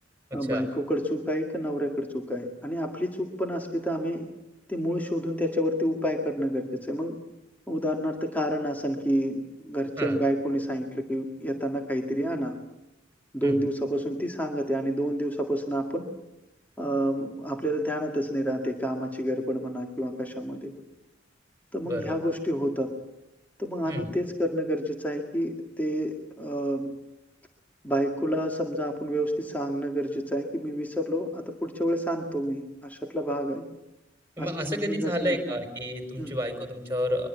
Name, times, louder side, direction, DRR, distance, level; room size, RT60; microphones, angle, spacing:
voice 1, 0.3-4.3 4.7-7.2 7.7-12.6 13.3-16.1 16.8-20.7 21.7-22.9 23.6-26.9 27.8-33.6 34.4-35.4 36.2-36.3, equal, 10° left, 3 dB, 2.0 m, -29 dB
voice 2, 21.8-22.2 23.9-24.1 34.4-37.3, equal, 10° right, 6 dB, 4.6 m, -30 dB
23.0 x 22.5 x 8.4 m, 0.91 s
head